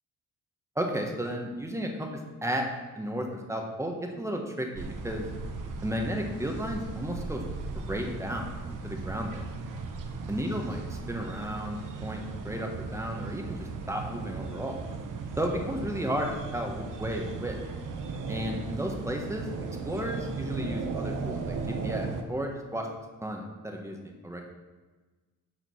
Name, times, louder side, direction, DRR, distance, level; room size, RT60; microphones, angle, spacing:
voice 1, 0.7-2.7 3.0-5.3 5.8-7.4 7.9-8.5 8.8-9.4 10.3-14.8 15.4-17.6 18.3-19.5 19.8-22.9 23.2-24.4, equal, 10° right, 2 dB, 1.4 m, -33 dB
sound 1, 4.8-22.2, right 4 dB, 70° right, 1.2 m, -37 dB
11.0 x 5.1 x 6.2 m, 1.3 s
cardioid pair, 140°, 33 cm